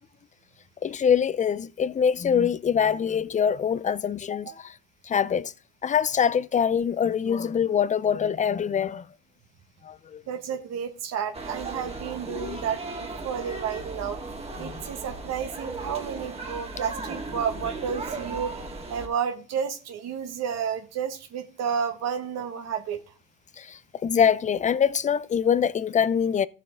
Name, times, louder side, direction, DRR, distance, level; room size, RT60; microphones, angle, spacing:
voice 1, 0.8-4.7 5.0-5.5 5.8-9.0 9.8-10.2 12.3-12.6 14.6-14.8 23.6-26.5, left 7 dB, 25° left, 0.5 m, -24 dB
voice 2, 10.3-12.8 13.2-14.2 14.6-18.5 18.9-23.0, right 7 dB, 60° right, 1.6 m, -31 dB
sound 1, 11.3-19.1, right 3 dB, 20° right, 1.9 m, -36 dB
13.5 x 7.3 x 3.7 m
supercardioid pair, 95°, 30 cm